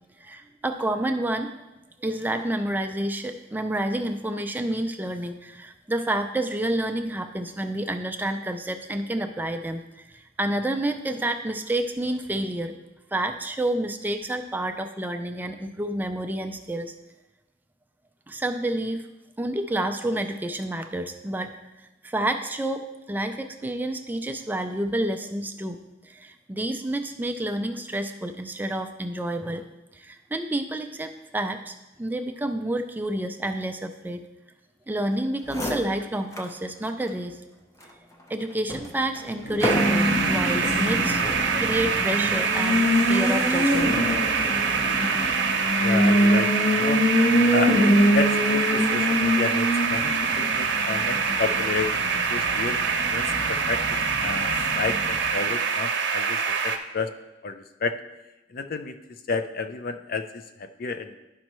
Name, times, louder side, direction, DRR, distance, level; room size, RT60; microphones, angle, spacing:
voice 1, 0.2-1.5 2.0-12.7 13.1-16.9 18.3-19.1 19.4-21.5 22.0-25.8 26.0-29.6 29.9-34.2 34.9-37.4 38.3-41.2 41.6-44.0, right 1 dB, 10° right, 6 dB, 0.4 m, -29 dB
sound 1, 35.1-35.2 35.4-36.6 37.0-37.1 37.8-40.4 41.1-41.5, equal, 15° left, 0.7 m, -32 dB
Race car auto racing, 39.2-55.5, equal, 75° left, 2.5 m, -25 dB
sound 2, 39.6-56.8, right 5 dB, 80° right, 0.7 m, -25 dB
voice 2, 45.8-47.0 47.5-47.8 48.1-57.1 57.4-58.0 58.5-61.2, left 4 dB, 50° left, 9 dB, 0.4 m, -31 dB
11.0 x 5.3 x 3.0 m, 1.0 s
head